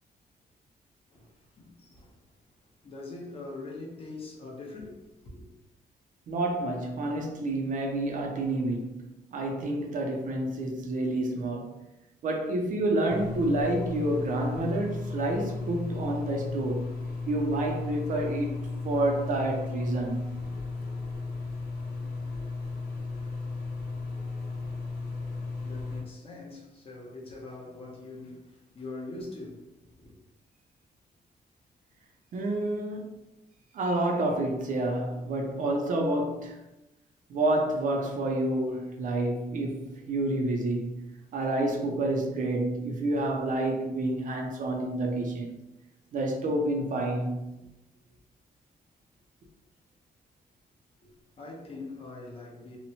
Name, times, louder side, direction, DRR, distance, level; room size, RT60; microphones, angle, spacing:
voice 1, 1.1-2.2 2.8-5.5 25.1-30.1 51.0-52.8, left 2 dB, 35° left, 0.6 m, -43 dB
voice 2, 6.3-11.8 12.2-16.9 17.3-20.3 32.3-33.2 33.7-36.6 37.3-45.6 46.1-47.5, right 1 dB, 55° right, 0.4 m, -29 dB
sound 1, 13.1-26.0, left 3 dB, 90° left, 0.9 m, -35 dB
2.8 x 2.1 x 2.6 m
wide cardioid pair, 175°, 16 cm